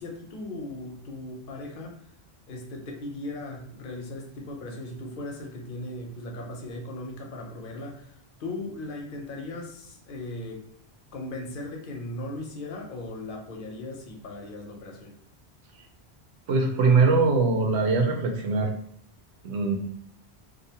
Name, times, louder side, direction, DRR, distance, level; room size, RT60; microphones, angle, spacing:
voice 1, 0.0-2.0 2.5-10.6 11.1-15.2, left 2 dB, 60° left, 1 dB, 0.7 m, -38 dB
voice 2, 16.5-18.7 19.4-19.8, right 4 dB, 90° right, 3 dB, 0.9 m, -22 dB
2.5 x 2.1 x 2.7 m, 0.64 s
omnidirectional pair, 1.1 m